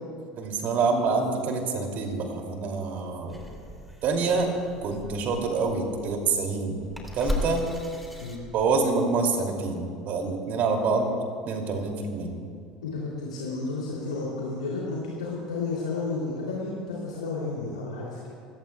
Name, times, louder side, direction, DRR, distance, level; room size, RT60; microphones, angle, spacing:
voice 1, 0.4-3.4 4.0-4.5 4.8-6.8 7.1-7.7 8.5-9.8 10.1-11.0 11.5-12.3, right 4 dB, 50° right, 3 dB, 2.8 m, -26 dB
sound 1, 3.3-9.0, left 1 dB, ahead, 3.4 m, -37 dB
voice 2, 12.8-18.3, left 3 dB, 85° left, -5 dB, 3.1 m, -32 dB
28.0 x 17.5 x 2.4 m, 2.2 s
hypercardioid pair, 70°, 4 cm